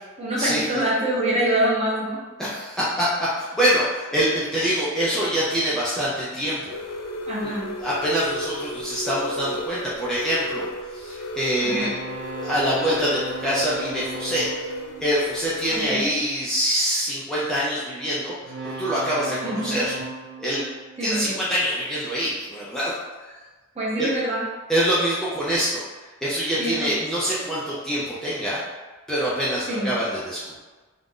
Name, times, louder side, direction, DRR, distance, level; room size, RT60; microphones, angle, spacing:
voice 1, 0.2-2.2 7.3-7.7 11.6-11.9 15.7-16.1 19.4-19.8 21.0-21.3 23.8-24.4 26.6-26.9 29.7-29.9, right 1 dB, 30° right, -6 dB, 0.8 m, -25 dB
voice 2, 2.4-6.8 7.4-7.5 7.8-11.9 12.4-14.7 15.0-18.3 18.8-19.9 20.4-20.6 21.0-22.9 23.2-23.4 24.0-24.1 24.7-25.8 26.2-28.6 29.1-30.6, equal, 5° left, -9 dB, 0.4 m, -25 dB
sound 1, 6.7-15.9, left 1 dB, 80° left, 0.4 m, -34 dB
sound 2, 11.7-16.1 18.4-21.7, right 3 dB, 70° right, 0.8 m, -37 dB
2.4 x 2.1 x 3.6 m, 1.3 s
head